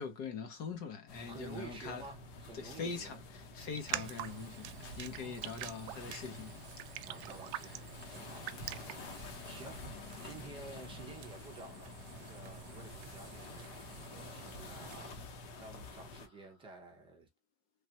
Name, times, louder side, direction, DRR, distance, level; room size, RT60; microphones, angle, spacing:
voice 1, 0.0-2.0 2.5-7.3 7.6-7.8, left 5 dB, 45° left, 0.8 m, -43 dB
sound 1, 1.1-16.3, left 3 dB, 60° left, 1.1 m, -49 dB
voice 2, 1.3-3.2 5.1-5.6 7.0-17.3, right 3 dB, 15° right, 0.6 m, -52 dB
Raindrop, 3.6-9.8, right 14 dB, 55° right, 0.4 m, -45 dB
sound 2, 4.0-15.1, right 9 dB, 85° right, 0.7 m, -53 dB
3.3 x 2.4 x 2.8 m
supercardioid pair, 165°, 33 cm